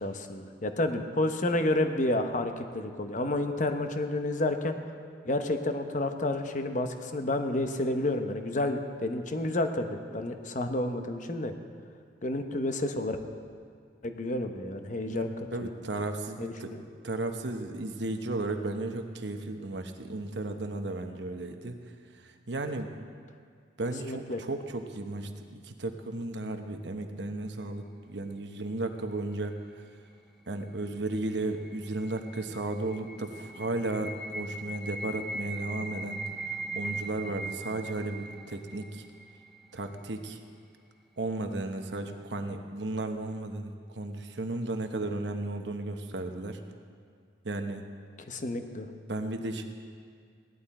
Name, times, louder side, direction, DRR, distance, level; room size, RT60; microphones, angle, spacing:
voice 1, 0.0-4.7 5.2-11.5 12.2-13.2 14.0-15.3 15.6-15.7 16.4-16.8 24.0-24.4 48.2-48.9, left 1 dB, 45° left, 6 dB, 0.9 m, -30 dB
voice 2, 15.5-16.7 17.0-21.8 22.2-22.9 23.8-29.5 30.5-36.2 36.7-39.0 39.7-40.4 41.2-46.6 47.4-47.8 49.1-49.6, right 2 dB, 70° right, 6 dB, 1.0 m, -34 dB
sound 1, 30.9-39.9, right 2 dB, ahead, 0.8 m, -40 dB
17.0 x 11.0 x 4.3 m, 2.2 s
head